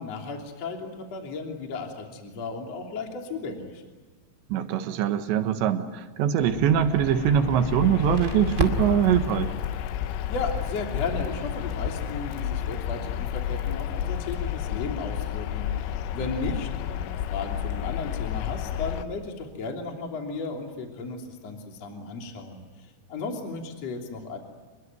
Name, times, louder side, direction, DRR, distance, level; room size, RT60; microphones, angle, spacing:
voice 1, 0.0-3.8 10.3-22.6 23.1-24.4, left 3 dB, 35° left, 2 dB, 3.7 m, -35 dB
voice 2, 4.5-9.5, right 9 dB, 70° right, 8 dB, 3.4 m, -23 dB
sound 1, 6.4-19.0, left 10 dB, 85° left, 3.6 m, -31 dB
Crackle, 7.8-14.3, right 2 dB, 35° right, 1.1 m, -37 dB
27.5 x 22.0 x 9.5 m, 1.3 s
omnidirectional pair, 5.6 m